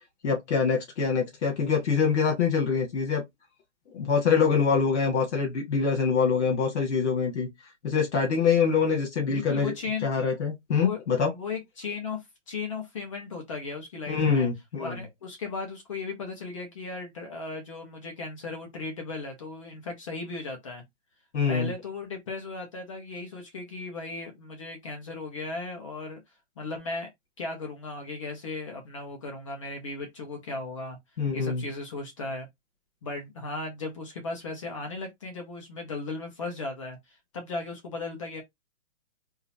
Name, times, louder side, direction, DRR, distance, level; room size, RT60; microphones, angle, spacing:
voice 1, 0.2-3.2 3.9-7.5 7.8-9.7 10.0-11.3 14.1-14.9 21.3-21.7 31.2-31.6, left 5 dB, 70° left, 1.8 m, -25 dB
voice 2, 9.3-10.1 10.7-11.0 11.3-14.5 14.8-20.8 21.5-26.2 26.6-27.1 27.4-31.0 31.3-32.5 33.0-38.4, left 3 dB, 25° left, 0.9 m, -36 dB
3.7 x 2.9 x 2.7 m
hypercardioid pair, 175°, 36 cm